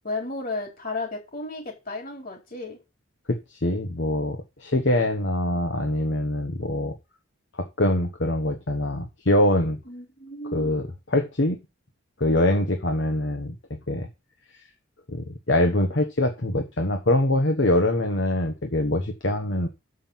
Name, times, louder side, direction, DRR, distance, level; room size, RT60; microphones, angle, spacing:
voice 1, 0.0-2.8 9.9-10.8, left 2 dB, 45° left, 2 dB, 3.9 m, -33 dB
voice 2, 3.3-6.9 7.6-9.8 10.5-11.6 12.2-13.5 13.9-14.1 15.1-19.7, left 1 dB, 60° left, 5 dB, 1.2 m, -24 dB
7.5 x 6.3 x 7.3 m, 0.26 s
head